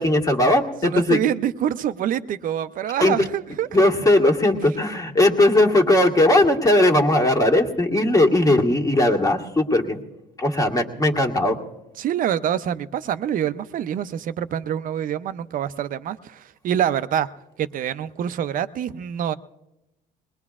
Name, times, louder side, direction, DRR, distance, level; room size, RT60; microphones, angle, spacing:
voice 1, 0.0-1.2 3.0-3.1 3.7-10.0 10.4-11.6, left 1 dB, 20° left, 2 dB, 1.7 m, -18 dB
voice 2, 0.8-3.7 12.0-17.3 17.6-19.3, right 10 dB, 55° right, 13 dB, 0.6 m, -26 dB
21.5 x 20.0 x 2.4 m, 0.94 s
cardioid pair, 95°, 17 cm